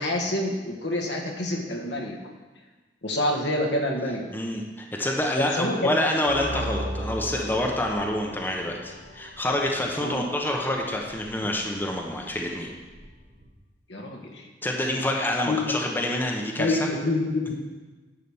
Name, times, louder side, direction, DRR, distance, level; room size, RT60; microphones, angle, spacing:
voice 1, 0.0-2.2 3.0-4.3 5.4-5.9 10.0-10.2 13.9-14.5 15.4-15.6 16.6-17.5, left 1 dB, 70° left, 1 dB, 1.5 m, -27 dB
voice 2, 4.3-12.7 14.6-16.9, left 1 dB, 10° left, 0 dB, 1.0 m, -27 dB
sound 1, 6.3-13.5, equal, 50° right, 2.8 m, -38 dB
11.0 x 5.0 x 7.2 m, 1.3 s
head